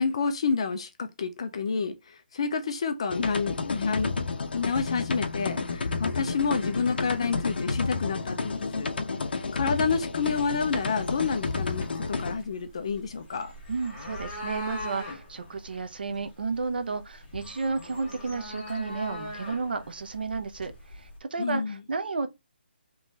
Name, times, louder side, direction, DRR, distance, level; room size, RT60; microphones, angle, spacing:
voice 1, 0.0-1.9 2.3-4.1 4.5-8.9 9.5-13.5 21.4-21.8, left 5 dB, 30° left, 0.5 m, -29 dB
sound 1, 3.1-12.3, left 4 dB, 60° left, 0.8 m, -31 dB
sound 2, 10.4-21.2, left 1 dB, 15° left, 1.7 m, -42 dB
voice 2, 13.7-22.3, right 4 dB, 60° right, 0.8 m, -32 dB
3.8 x 3.1 x 3.9 m
hypercardioid pair, 175°, 6 cm